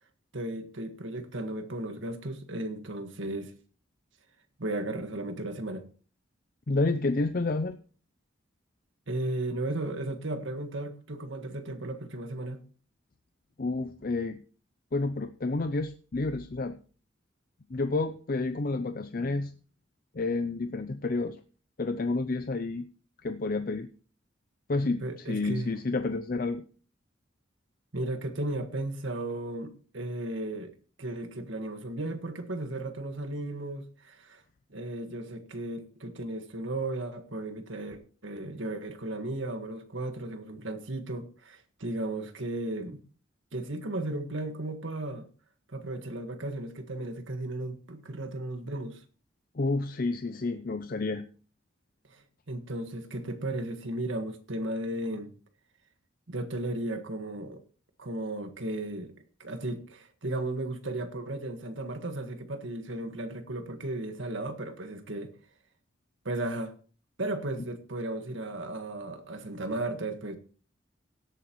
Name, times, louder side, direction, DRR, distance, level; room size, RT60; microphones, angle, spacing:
voice 1, 0.3-3.5 4.6-5.8 9.1-12.6 25.0-25.7 27.9-34.4 34.7-43.0 43.5-45.2 45.7-49.0 52.1-55.3 56.3-57.6 58.0-59.1 59.4-65.3 66.2-66.7 67.2-70.4, right 2 dB, 75° right, 1.6 m, -35 dB
voice 2, 6.7-7.8 13.6-14.4 14.9-16.8 17.7-19.5 20.1-21.4 21.8-22.8 23.2-23.9 24.7-26.6 49.5-51.2, left 3 dB, 45° left, 0.5 m, -30 dB
18.0 x 8.0 x 3.1 m
head